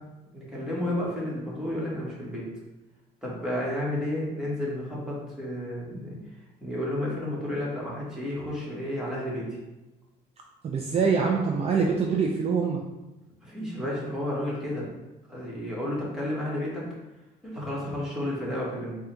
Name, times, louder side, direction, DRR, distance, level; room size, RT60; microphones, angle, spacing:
voice 1, 0.3-2.5 3.2-6.2 6.6-9.4 13.4-14.9 15.3-16.8 17.4-19.0, left 1 dB, 5° right, -6 dB, 1.4 m, -31 dB
voice 2, 10.6-12.8, right 5 dB, 40° right, 0 dB, 0.4 m, -24 dB
3.7 x 2.4 x 4.5 m, 1.0 s
cardioid pair, 110°, 17 cm